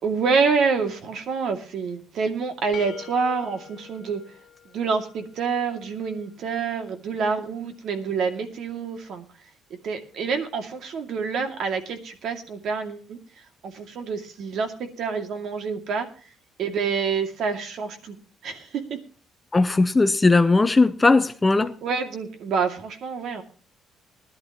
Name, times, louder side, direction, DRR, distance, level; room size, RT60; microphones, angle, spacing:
voice 1, 0.0-4.2 4.7-9.2 9.8-13.2 13.6-16.1 16.6-18.2 18.4-19.0 21.8-23.4, right 5 dB, 60° right, 2.4 m, -27 dB
sound 1, 2.7-5.6, left 10 dB, 50° left, 1.5 m, -45 dB
voice 2, 19.5-21.7, left 3 dB, 15° left, 0.7 m, -18 dB
20.0 x 11.5 x 3.0 m
cardioid pair, 145°, 0 cm